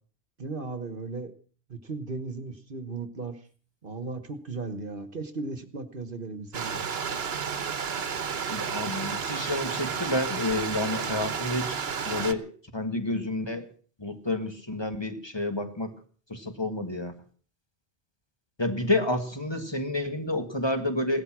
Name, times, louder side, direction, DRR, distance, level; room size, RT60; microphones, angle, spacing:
voice 1, 0.4-1.3 1.7-3.5 3.8-6.8, right 3 dB, 55° right, 11 dB, 1.4 m, -36 dB
Stream, 6.5-12.3, right 6 dB, 70° right, 1.3 m, -31 dB
voice 2, 8.5-13.7 14.0-15.9 16.3-17.1 18.6-21.2, left 2 dB, 25° left, 6 dB, 1.8 m, -30 dB
17.5 x 13.0 x 6.0 m, 0.43 s
omnidirectional pair, 1.1 m